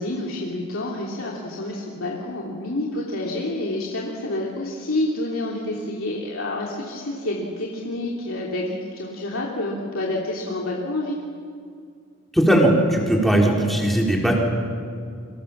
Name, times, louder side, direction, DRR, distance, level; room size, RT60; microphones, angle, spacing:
voice 1, 0.0-11.2, left 1 dB, 70° left, -3 dB, 3.0 m, -28 dB
voice 2, 12.3-14.4, right 1 dB, ahead, -2 dB, 4.6 m, -18 dB
30.0 x 25.0 x 7.3 m, 2.3 s
head